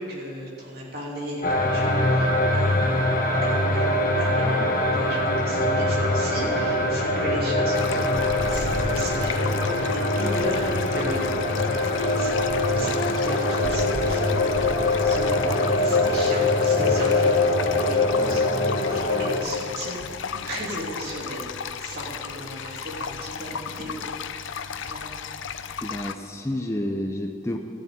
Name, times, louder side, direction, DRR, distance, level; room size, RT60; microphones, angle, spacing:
voice 1, 0.0-1.4 1.7-11.5 12.0-12.3 12.7-20.0 20.5-21.4 21.8-24.0 24.8-25.0, equal, 50° right, -4 dB, 3.0 m, -35 dB
sound 1, 1.4-19.4, left 2 dB, 45° left, 1.2 m, -23 dB
sound 2, 7.7-26.2, left 7 dB, 75° left, 0.5 m, -35 dB
sound 3, 8.1-9.4 10.3-11.6 12.2-12.9 13.6-15.3, right 1 dB, 90° right, 1.3 m, -37 dB
voice 2, 25.8-27.6, left 1 dB, 15° left, 2 dB, 0.6 m, -29 dB
14.0 x 7.2 x 8.8 m, 2.7 s
head